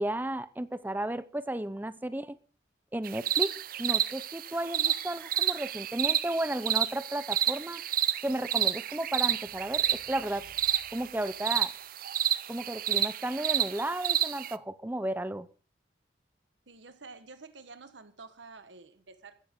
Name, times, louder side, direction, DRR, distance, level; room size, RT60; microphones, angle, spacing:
voice 1, 0.0-2.4 2.9-3.5 3.8-7.8 8.2-10.4 10.9-11.7 12.5-15.5, right 1 dB, 10° right, 0.7 m, -33 dB
sound 1, 3.0-14.5, right 11 dB, 50° right, 0.5 m, -30 dB
sound 2, 9.4-12.0, right 1 dB, 85° left, 6.0 m, -60 dB
voice 2, 16.7-19.4, right 4 dB, 85° right, 1.3 m, -49 dB
15.5 x 14.0 x 3.7 m
head